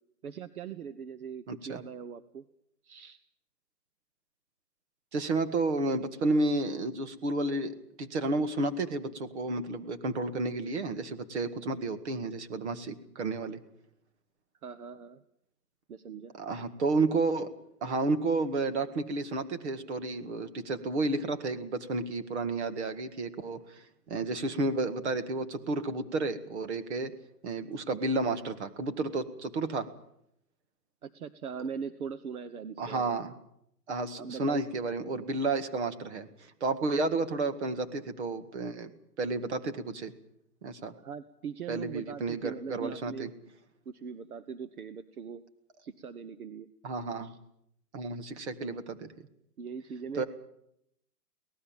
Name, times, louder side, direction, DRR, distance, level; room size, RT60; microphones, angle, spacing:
voice 1, 0.2-2.5 2.8-3.2 14.6-15.2 15.9-16.4 31.0-33.2 34.2-34.6 41.0-43.5 43.8-45.4 45.8-46.7 47.2-47.4 49.6-50.2, right 6 dB, 60° right, 12 dB, 1.2 m, -41 dB
voice 2, 1.5-1.8 5.1-13.6 16.4-17.5 17.8-27.1 27.4-29.9 32.8-33.3 33.9-38.9 39.2-40.1 40.6-40.9 41.7-43.3 46.8-47.3 47.9-49.1 50.2-50.3, right 3 dB, 45° right, 9 dB, 1.9 m, -31 dB
24.5 x 18.5 x 7.4 m, 0.75 s
hypercardioid pair, 175°, 49 cm